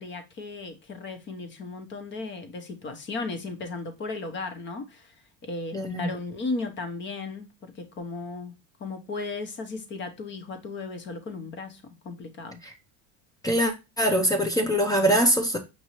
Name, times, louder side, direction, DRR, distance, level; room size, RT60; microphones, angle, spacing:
voice 1, 0.0-5.1 5.4-8.5 8.8-12.6, left 3 dB, 35° left, 0.9 m, -35 dB
voice 2, 5.7-6.1 12.6-12.7 13.4-15.6, right 1 dB, 10° left, 0.5 m, -23 dB
5.4 x 2.7 x 3.0 m
cardioid pair, 145°, 35 cm